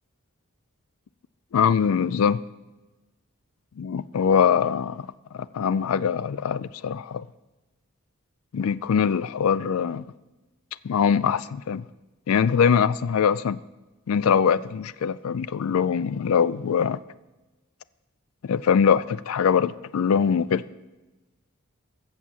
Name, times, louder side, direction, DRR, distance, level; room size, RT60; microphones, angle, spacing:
voice 1, 1.5-2.4 3.8-5.1 5.3-7.3 8.5-10.0 10.8-11.8 12.3-13.6 14.1-17.0 18.4-20.6, left 7 dB, 75° left, 17 dB, 0.4 m, -22 dB
14.5 x 7.3 x 7.4 m, 1.1 s
head